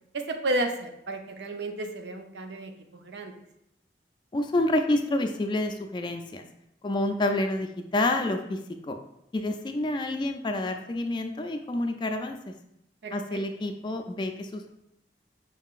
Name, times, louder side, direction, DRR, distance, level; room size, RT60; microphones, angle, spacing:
voice 1, 0.1-3.3 13.0-13.4, right 1 dB, 80° right, 5 dB, 0.5 m, -32 dB
voice 2, 4.3-6.4 6.8-9.0 9.3-12.5 13.1-14.7, left 1 dB, 25° left, 6 dB, 0.3 m, -28 dB
5.4 x 3.7 x 2.4 m, 0.80 s
head